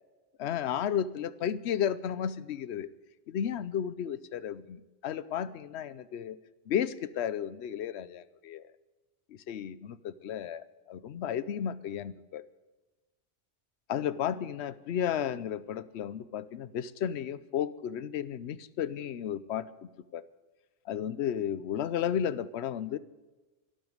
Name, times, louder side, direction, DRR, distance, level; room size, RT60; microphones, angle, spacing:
voice 1, 0.4-2.9 3.3-6.4 6.7-8.6 9.5-12.5 13.9-20.3 20.9-23.0, left 9 dB, 70° left, 17 dB, 0.9 m, -33 dB
12.5 x 12.0 x 7.9 m, 1.2 s
omnidirectional pair, 1.2 m